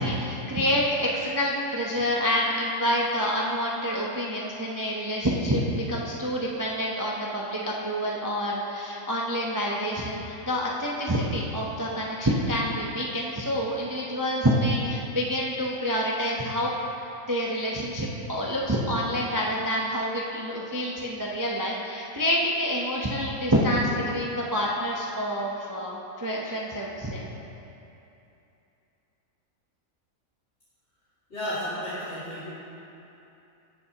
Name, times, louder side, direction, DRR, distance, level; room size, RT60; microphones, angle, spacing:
voice 1, 0.0-16.7 17.3-27.2, equal, 20° right, -3 dB, 0.6 m, -27 dB
voice 2, 31.3-32.5, equal, 55° left, -15 dB, 2.7 m, -32 dB
17.5 x 6.9 x 2.9 m, 2.9 s
omnidirectional pair, 1.5 m